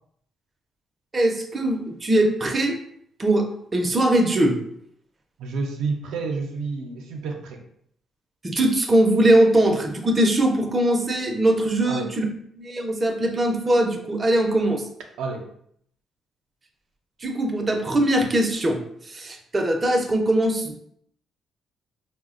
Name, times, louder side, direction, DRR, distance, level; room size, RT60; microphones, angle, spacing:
voice 1, 1.1-2.8 3.2-4.6 8.4-12.3 12.6-14.9 17.2-20.8, right 1 dB, 30° right, 3 dB, 0.5 m, -21 dB
voice 2, 5.4-7.6 11.8-12.1 15.2-15.5, right 4 dB, 85° right, 2 dB, 0.4 m, -29 dB
3.8 x 2.0 x 2.4 m, 0.68 s
cardioid pair, 90°, 0 cm